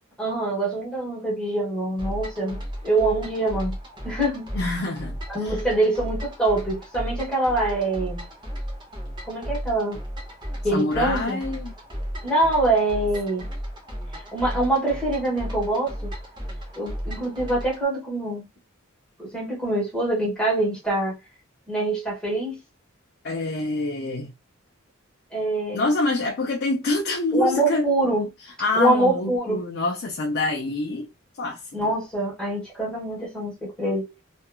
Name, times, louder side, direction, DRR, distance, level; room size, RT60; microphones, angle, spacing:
voice 1, 0.2-3.7 4.0-4.5 5.3-8.2 9.3-10.0 10.6-11.4 12.2-13.5 14.3-16.1 16.8-18.4 19.2-21.1 21.7-22.6 25.3-25.9 27.3-28.3 28.8-29.6 31.7-34.1, right 2 dB, 5° left, 1.2 m, -24 dB
sound 1, 2.0-17.8, equal, 20° right, 0.7 m, -34 dB
voice 2, 4.5-5.6 10.7-11.7 23.2-24.3 25.7-27.9 28.6-31.1 31.4-31.9, left 2 dB, 50° left, 0.5 m, -26 dB
2.8 x 2.3 x 2.3 m
head